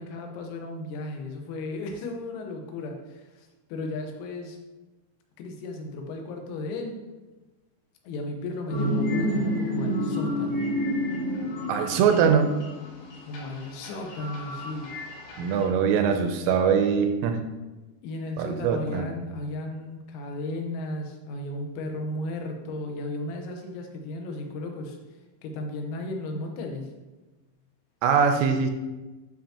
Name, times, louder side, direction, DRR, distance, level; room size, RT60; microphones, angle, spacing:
voice 1, 0.0-4.6 5.4-7.0 8.1-10.7 13.2-14.9 18.0-25.0 25.4-26.9, left 2 dB, 90° left, 3 dB, 3.8 m, -35 dB
sound 1, 8.7-15.6, equal, 70° left, 3.9 m, -30 dB
voice 2, 11.7-12.5 15.4-17.4 18.4-19.1 28.0-28.7, right 6 dB, 85° right, 6 dB, 3.0 m, -22 dB
11.5 x 5.7 x 2.9 m, 1.1 s
omnidirectional pair, 6.0 m